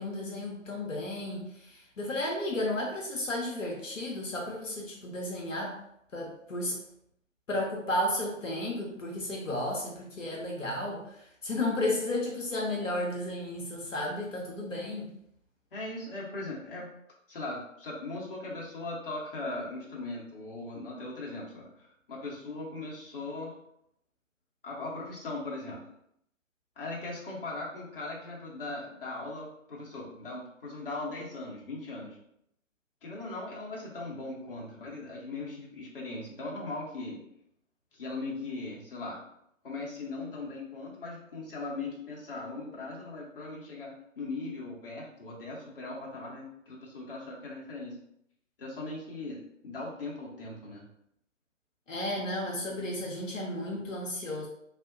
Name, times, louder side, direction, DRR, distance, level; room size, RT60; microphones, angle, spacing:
voice 1, 0.0-5.8 6.1-6.8 7.5-15.1 51.9-54.5, left 1 dB, 70° left, -2 dB, 0.7 m, -33 dB
voice 2, 15.7-16.9 17.3-23.5 24.6-25.8 26.8-32.2 33.0-37.2 37.9-39.2 39.6-48.0 48.6-50.8, left 2 dB, 45° left, -4 dB, 0.8 m, -39 dB
2.7 x 2.0 x 2.5 m, 0.74 s
figure-of-eight pair, 140°, 40 cm